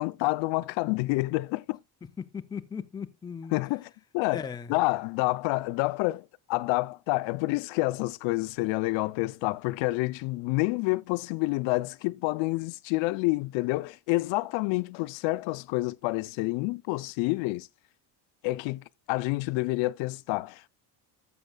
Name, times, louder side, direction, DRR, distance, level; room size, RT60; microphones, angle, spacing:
voice 1, 0.0-1.8 3.5-17.7 18.4-20.7, left 22 dB, 85° left, 0.6 m, -28 dB
voice 2, 2.0-3.6 4.3-4.8, left 6 dB, 10° left, 0.4 m, -38 dB
12.0 x 7.2 x 2.2 m
cardioid pair, 160°, 44 cm